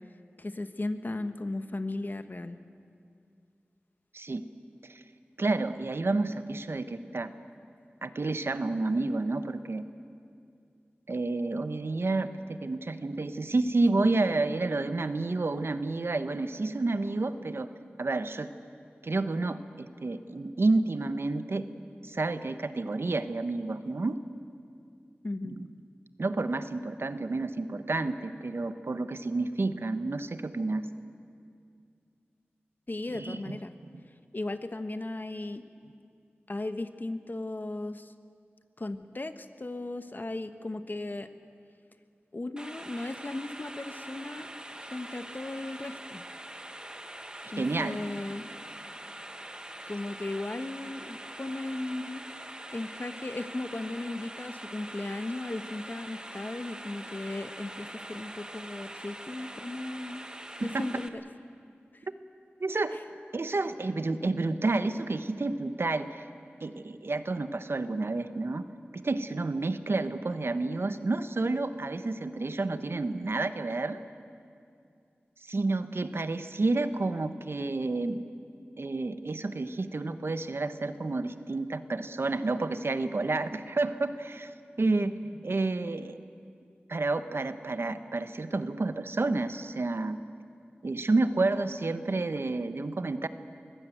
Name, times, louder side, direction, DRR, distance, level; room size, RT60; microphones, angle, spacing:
voice 1, 0.4-2.6 25.2-25.6 32.9-33.7 34.3-35.6 36.5-38.1 38.8-41.3 42.3-44.5 44.9-46.2 47.5-48.5 49.9-52.3 52.7-60.2 60.6-61.2 61.9-62.0 84.8-85.1, left 2 dB, 50° left, 10 dB, 1.2 m, -36 dB
voice 2, 5.4-7.3 8.0-9.8 11.1-17.7 18.0-18.5 19.0-21.7 22.0-24.2 25.4-25.7 26.2-30.8 33.1-33.6 47.6-48.0 60.6-60.8 62.6-63.0 63.3-66.2 66.6-68.6 68.9-74.0 75.4-78.2 78.8-84.5 84.8-85.1 85.4-86.2 86.9-90.2 90.8-93.3, right 3 dB, 70° right, 11 dB, 1.0 m, -30 dB
sound 1, 42.6-61.1, right 1 dB, 20° right, 1.4 m, -44 dB
23.5 x 16.0 x 9.2 m, 2.4 s
wide cardioid pair, 40°, 4 cm